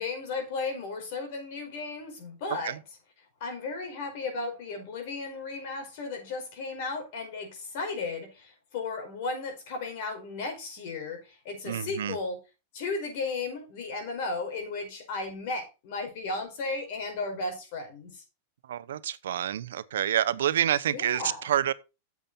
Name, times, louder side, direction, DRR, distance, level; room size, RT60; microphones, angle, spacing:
voice 1, 0.0-2.7 3.4-12.4 12.7-18.2 20.9-21.5, left 3 dB, 55° left, 5.0 m, -35 dB
voice 2, 11.6-12.2 18.7-21.7, right 10 dB, 85° right, 0.7 m, -28 dB
9.1 x 7.4 x 4.3 m
supercardioid pair, 145°, 0 cm